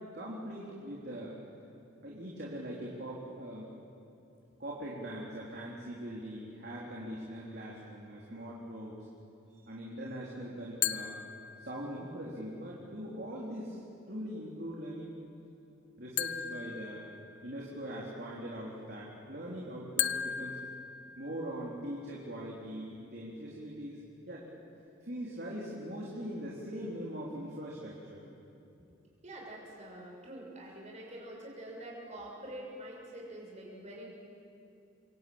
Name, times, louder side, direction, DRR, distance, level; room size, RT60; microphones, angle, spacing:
voice 1, 0.1-1.3 2.0-3.7 4.6-9.0 9.7-11.1 11.6-13.8 14.1-15.1 16.0-17.1 17.4-20.6 21.2-24.0 24.3-24.5 25.0-28.2, equal, 50° right, -4 dB, 3.7 m, -41 dB
sound 1, 10.8-12.1 16.2-17.7 20.0-21.7, left 10 dB, 60° left, 0.8 m, -36 dB
voice 2, 29.2-34.1, right 1 dB, 35° right, -3 dB, 6.6 m, -46 dB
27.5 x 23.0 x 8.9 m, 2.7 s
head